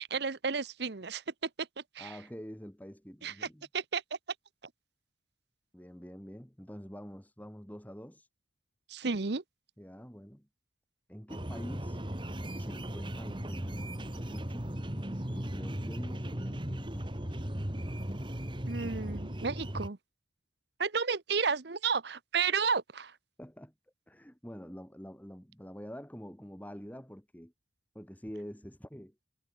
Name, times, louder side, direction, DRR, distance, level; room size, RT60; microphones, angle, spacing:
voice 1, 0.0-1.7 1.9-2.2 3.2-3.5 3.7-4.0 8.9-9.4 18.7-20.0 20.8-23.2, right 5 dB, 60° right, 0.9 m, -32 dB
voice 2, 2.0-3.7 5.7-8.3 9.8-10.5 11.1-12.0 12.5-17.5 23.4-23.7 24.1-27.5 27.9-29.1, equal, 10° left, 3.1 m, -47 dB
sound 1, 11.3-19.9, right 1 dB, 25° right, 2.3 m, -37 dB
head